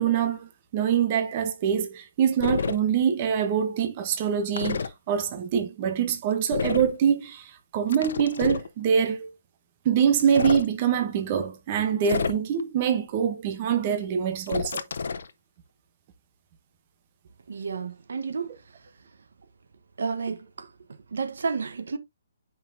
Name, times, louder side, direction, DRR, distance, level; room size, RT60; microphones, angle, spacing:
voice 1, 0.0-9.3 9.8-14.8, right 8 dB, 25° right, 0.8 m, -24 dB
sound 1, 2.4-2.8 4.6-4.9 6.5-6.9 7.9-8.7 10.2-10.7 12.0-12.6 14.5-15.3, left 5 dB, 60° left, 0.9 m, -29 dB
voice 2, 17.5-18.5 20.0-20.7 21.1-22.0, right 5 dB, 70° right, 1.1 m, -31 dB
8.9 x 5.5 x 2.7 m
hypercardioid pair, 180°, 0 cm